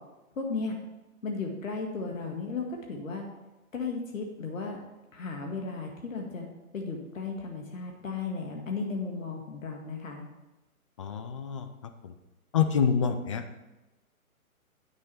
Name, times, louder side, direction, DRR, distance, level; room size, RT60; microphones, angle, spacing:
voice 1, 0.4-0.8 1.2-3.2 3.7-4.8 5.1-6.5 6.7-10.2, left 4 dB, 65° left, 0 dB, 2.1 m, -35 dB
voice 2, 11.0-11.7 12.0-12.1 12.5-13.4, left 7 dB, 25° left, 8 dB, 0.5 m, -27 dB
9.5 x 6.4 x 5.8 m, 1.0 s
figure-of-eight pair, 130°, 43 cm